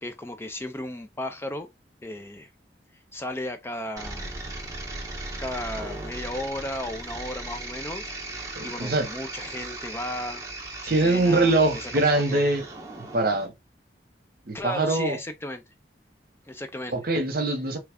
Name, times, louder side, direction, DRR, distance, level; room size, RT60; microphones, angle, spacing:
voice 1, 0.0-1.7 2.0-2.5 3.1-4.3 5.4-10.4 10.8-12.4 14.5-15.6 16.5-17.0, left 1 dB, 15° left, 0.4 m, -35 dB
sound 1, 4.0-13.5, right 2 dB, 20° right, 0.9 m, -37 dB
voice 2, 8.6-9.1 10.9-12.6 13.1-13.5 14.5-15.2 16.9-17.8, right 2 dB, 55° right, 0.9 m, -23 dB
3.2 x 2.3 x 3.4 m
head